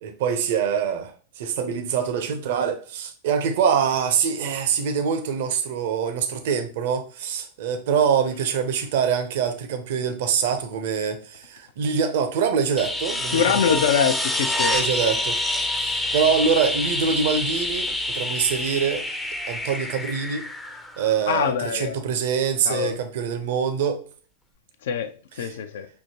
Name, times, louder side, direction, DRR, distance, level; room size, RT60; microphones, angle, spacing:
voice 1, 0.0-13.4 13.7-13.8 14.7-15.4 15.7-19.0 19.5-20.4 21.0-24.0 25.4-25.5, right 7 dB, 55° right, 0.7 m, -24 dB
sound 1, 12.8-21.4 23.8-23.9, left 1 dB, 5° left, 0.6 m, -27 dB
voice 2, 13.3-14.7 21.3-22.0 22.6-23.0 24.8-25.9, left 7 dB, 60° left, 0.5 m, -24 dB
6.5 x 2.8 x 2.8 m
figure-of-eight pair, 90°, 0 cm